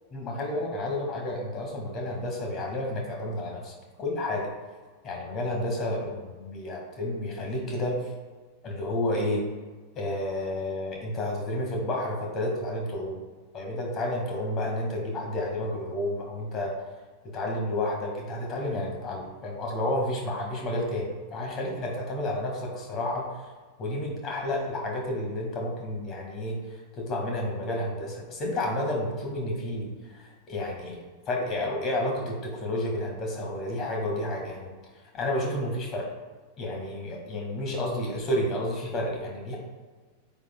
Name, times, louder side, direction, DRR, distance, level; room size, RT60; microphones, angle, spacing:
voice 1, 0.1-3.7 4.0-4.5 5.0-7.9 8.6-9.5 9.9-13.2 13.5-16.7 17.2-23.4 23.8-31.0 31.2-34.7 35.1-36.1 36.6-39.6, left 1 dB, 30° left, 0 dB, 1.8 m, -31 dB
9.2 x 5.9 x 2.3 m, 1.4 s
figure-of-eight pair, 90°, 0 cm